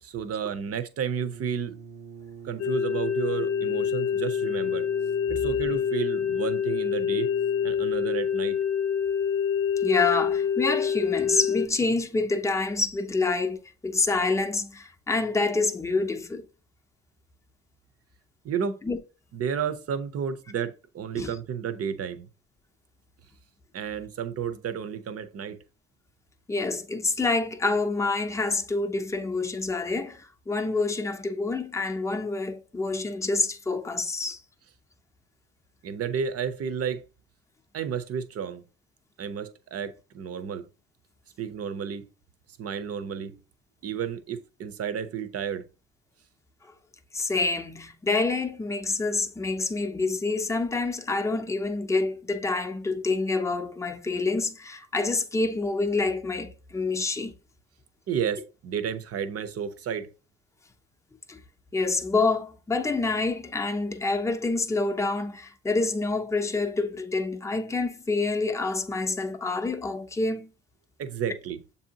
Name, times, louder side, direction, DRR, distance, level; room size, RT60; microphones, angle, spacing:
voice 1, 0.0-1.8 2.4-4.9 5.3-7.3 7.6-8.6 18.4-18.8 19.3-22.3 23.7-25.6 35.8-37.0 37.7-38.6 39.2-40.6 41.4-42.1 42.6-43.3 43.8-45.6 58.1-60.1 71.0-71.6, right 7 dB, 55° right, 0.6 m, -31 dB
Brass instrument, 1.1-8.3, right 6 dB, 85° right, 0.7 m, -46 dB
sound 1, 2.6-11.7, left 7 dB, 50° left, 0.6 m, -26 dB
voice 2, 9.8-16.4 18.8-19.0 21.1-21.3 26.5-34.4 47.1-57.3 61.3-61.4 61.7-70.5, left 3 dB, 10° left, 0.5 m, -27 dB
6.9 x 2.7 x 2.8 m
cardioid pair, 90°, 30 cm